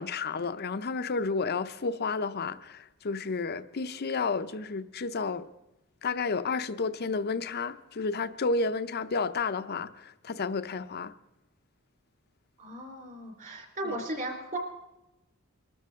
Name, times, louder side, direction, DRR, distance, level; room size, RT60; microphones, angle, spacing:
voice 1, 0.0-5.5 6.0-11.1 13.8-14.0, left 4 dB, 50° left, 0.6 m, -31 dB
voice 2, 12.6-14.6, right 1 dB, 40° right, 3.8 m, -36 dB
24.0 x 13.5 x 3.6 m
head